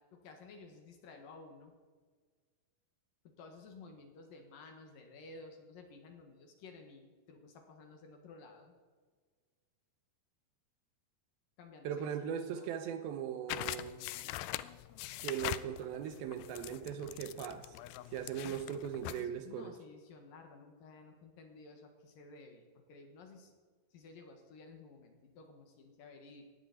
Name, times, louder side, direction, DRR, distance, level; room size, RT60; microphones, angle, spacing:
voice 1, 0.0-1.7 3.2-8.7 11.6-12.3 12.6-12.7 19.1-23.5 23.9-26.5, left 3 dB, 65° left, 4 dB, 3.1 m, -54 dB
voice 2, 11.8-14.1 15.2-17.8 18.1-19.7, right 8 dB, 75° right, 8 dB, 2.5 m, -39 dB
sound 1, 13.5-19.3, left 15 dB, 85° left, 2.1 m, -42 dB
19.0 x 15.5 x 4.2 m, 1.5 s
omnidirectional pair, 4.7 m